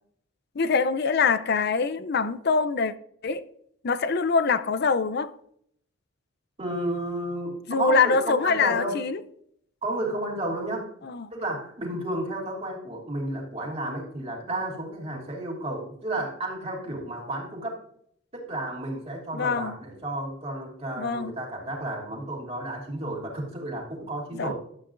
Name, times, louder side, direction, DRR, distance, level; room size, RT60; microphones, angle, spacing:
voice 1, 0.6-2.9 3.2-3.4 3.8-5.3 7.7-9.2 11.0-11.3 19.3-19.7 21.0-21.3 24.3-24.5, left 4 dB, 50° left, 0.5 m, -24 dB
voice 2, 6.6-9.0 9.8-10.9 11.3-17.8 18.3-24.5, right 1 dB, 30° right, 2.8 m, -32 dB
12.0 x 8.4 x 2.6 m
head